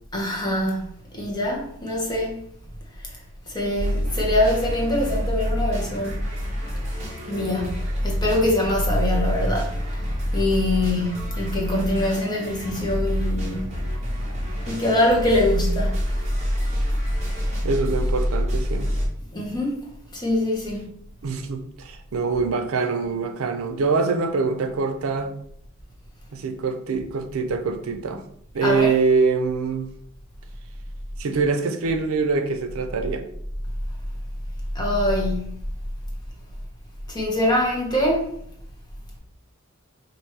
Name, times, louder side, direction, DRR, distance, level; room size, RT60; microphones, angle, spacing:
voice 1, 0.1-2.4 3.0-3.1 3.5-6.3 7.2-13.7 14.7-16.0 19.3-19.8 20.1-20.9 28.6-28.9 34.7-35.5 37.1-38.3, left 1 dB, 20° left, 1.0 m, -24 dB
sound 1, 3.7-19.1, equal, 35° right, 1.2 m, -26 dB
voice 2, 17.6-19.0 21.2-25.4 26.3-28.2 28.5-29.9 31.2-33.2, right 4 dB, 90° right, 0.5 m, -24 dB
3.0 x 2.6 x 4.4 m
head